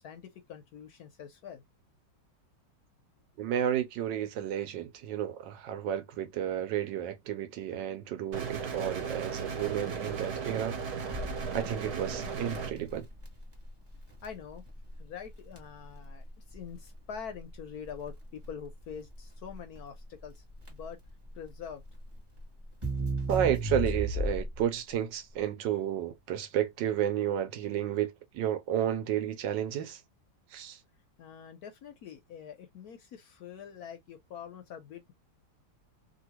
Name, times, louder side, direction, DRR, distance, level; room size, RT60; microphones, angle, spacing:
voice 1, 0.0-1.6 14.2-14.6 15.0-20.4 20.7-21.0 21.3-21.8 31.2-35.1, left 7 dB, 70° left, 1.0 m, -45 dB
voice 2, 3.4-10.8 11.5-13.1 23.3-30.0 30.5-30.8, right 10 dB, 80° right, 1.3 m, -32 dB
sound 1, 8.3-12.7, right 5 dB, 60° right, 1.2 m, -36 dB
Crackle, 11.1-24.7, right 1 dB, 20° right, 1.0 m, -37 dB
3.0 x 2.6 x 2.9 m
omnidirectional pair, 2.0 m